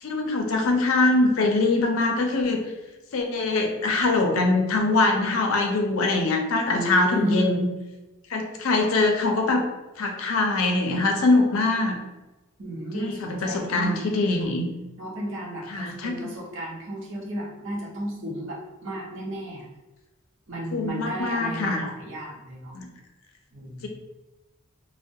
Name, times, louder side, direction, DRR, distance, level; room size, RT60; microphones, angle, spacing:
voice 1, 0.0-2.6 3.1-7.7 8.3-9.6 10.0-12.0 12.9-14.7 15.7-16.3 20.7-21.8 22.7-22.9, left 2 dB, 70° left, 2 dB, 0.4 m, -23 dB
voice 2, 6.7-7.6 12.6-14.5 15.0-19.6 20.5-22.8 23.5-23.9, right 1 dB, 60° right, -3 dB, 0.7 m, -33 dB
2.2 x 2.1 x 2.6 m, 1.1 s
head